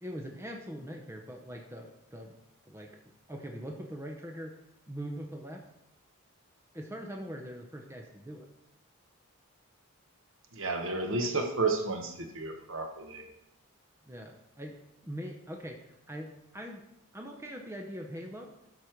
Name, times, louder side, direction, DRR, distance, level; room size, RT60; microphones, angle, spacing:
voice 1, 0.0-2.3 2.7-2.9 3.3-4.5 4.9-5.6 6.7-8.5 14.1-14.8 15.0-15.8 16.1-16.8 17.1-18.5, equal, 10° right, 2 dB, 0.7 m, -42 dB
voice 2, 10.5-13.2, right 3 dB, 60° right, 5 dB, 1.1 m, -32 dB
12.0 x 4.2 x 4.5 m, 0.84 s
head